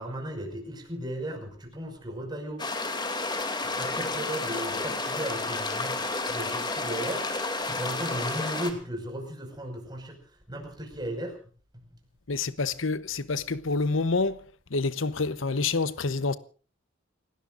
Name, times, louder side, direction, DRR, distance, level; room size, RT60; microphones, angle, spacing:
voice 1, 0.0-2.6 3.4-7.2 7.6-10.2 10.5-11.4, right 1 dB, 20° right, 5.7 m, -36 dB
sound 1, 2.6-8.7, left 3 dB, 20° left, 2.7 m, -31 dB
voice 2, 12.3-14.4 14.7-16.4, left 3 dB, 80° left, 1.0 m, -27 dB
29.5 x 18.0 x 2.6 m
head